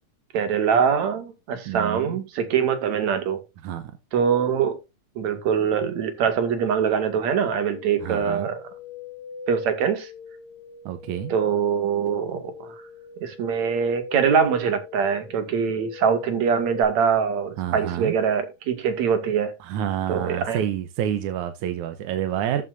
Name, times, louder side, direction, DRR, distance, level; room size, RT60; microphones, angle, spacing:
voice 1, 0.3-3.4 4.1-4.8 5.2-8.6 9.5-10.1 11.3-12.7 13.2-19.5 20.1-20.6, right 7 dB, 70° right, 3.3 m, -23 dB
voice 2, 1.7-2.2 3.6-3.9 8.0-8.5 10.9-11.3 17.6-18.1 19.6-22.6, right 10 dB, 85° right, 2.4 m, -28 dB
sound 1, 7.3-16.8, left 4 dB, 40° right, 5.9 m, -41 dB
13.5 x 7.9 x 2.6 m
omnidirectional pair, 3.4 m